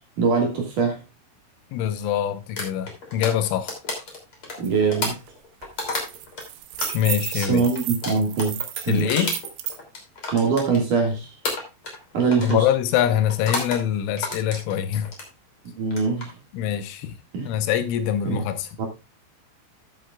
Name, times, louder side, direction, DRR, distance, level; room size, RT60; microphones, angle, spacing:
voice 1, 0.2-1.0 4.6-5.1 7.3-8.6 8.9-9.3 10.3-11.3 12.1-12.7 15.8-16.3 17.3-17.5 18.2-18.4 18.8-18.9, right 5 dB, 50° right, 2.9 m, -23 dB
voice 2, 1.7-3.8 6.9-7.6 8.9-9.3 12.4-15.1 16.5-17.2 17.4-18.7, left 10 dB, 85° left, 3.5 m, -24 dB
sound 1, 2.6-6.4 6.8-11.1 11.4-12.0 12.3-12.6 13.3-13.8 14.2-15.3 15.8-16.3, left 3 dB, 30° left, 3.1 m, -31 dB
sound 2, 4.6-4.7 5.1-5.3 5.6-9.8, right 13 dB, 85° right, 3.5 m, -33 dB
14.0 x 8.3 x 2.4 m
omnidirectional pair, 5.6 m